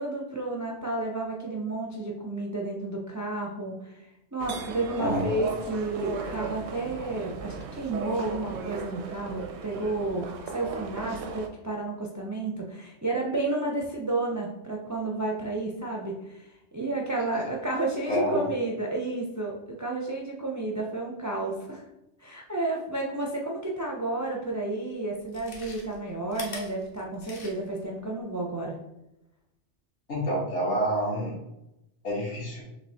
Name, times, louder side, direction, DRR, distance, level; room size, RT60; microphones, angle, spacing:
voice 1, 0.0-21.9 22.2-28.8, right 2 dB, 30° right, -1 dB, 0.3 m, -31 dB
sound 1, 4.4-11.5, right 5 dB, 85° right, 0.9 m, -37 dB
voice 2, 18.1-18.4 30.1-31.3 32.0-32.6, equal, 65° left, -5 dB, 1.9 m, -28 dB
Chewing mastication, 24.4-24.5 25.2-27.8 28.2-28.3, left 3 dB, 50° left, 1.0 m, -43 dB
6.5 x 2.7 x 2.8 m, 0.89 s
omnidirectional pair, 1.3 m